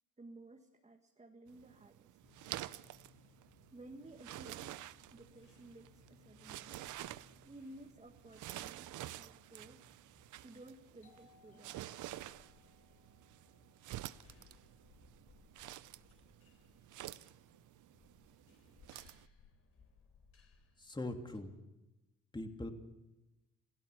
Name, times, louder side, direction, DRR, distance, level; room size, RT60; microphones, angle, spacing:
voice 1, 0.2-2.1 3.7-4.8 5.1-6.8 7.4-9.9 10.4-12.0, right 2 dB, 20° right, 4 dB, 1.8 m, -55 dB
sound 1, 1.5-19.3, right 14 dB, 80° right, 0.7 m, -50 dB
sound 2, 2.2-21.4, left 5 dB, 50° left, 4.7 m, -67 dB
Doorbell, 11.0-16.4, left 8 dB, 75° left, 7.5 m, -72 dB
voice 2, 20.8-21.5 22.3-22.7, left 2 dB, 15° left, 4 dB, 3.0 m, -41 dB
27.5 x 16.5 x 7.1 m, 1.0 s
cardioid pair, 90°, 30 cm